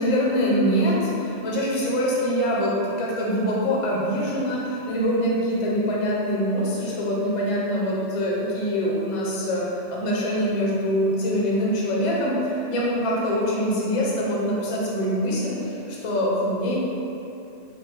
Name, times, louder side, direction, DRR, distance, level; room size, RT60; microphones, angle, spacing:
voice 1, 0.0-16.7, equal, 50° left, -5 dB, 0.4 m, -24 dB
3.2 x 2.3 x 3.3 m, 2.8 s
omnidirectional pair, 1.3 m